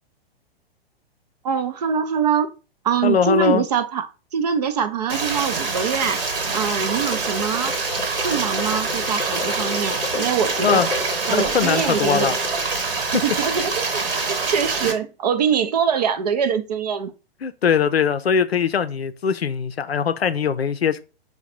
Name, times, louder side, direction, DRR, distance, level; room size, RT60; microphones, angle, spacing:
voice 1, 1.4-2.5 2.8-4.1 4.3-6.3 6.5-7.8 8.2-10.8 11.3-12.4 13.1-17.1, right 7 dB, 40° right, 0.4 m, -23 dB
voice 2, 3.0-3.6 10.6-10.9 11.3-12.3 17.4-21.0, left 7 dB, 75° left, 0.5 m, -21 dB
Stream, 5.1-14.9, right 4 dB, 60° right, 1.2 m, -25 dB
sound 1, 6.8-12.9, left 4 dB, 10° left, 0.7 m, -32 dB
4.6 x 2.2 x 4.2 m
figure-of-eight pair, 110°, 31 cm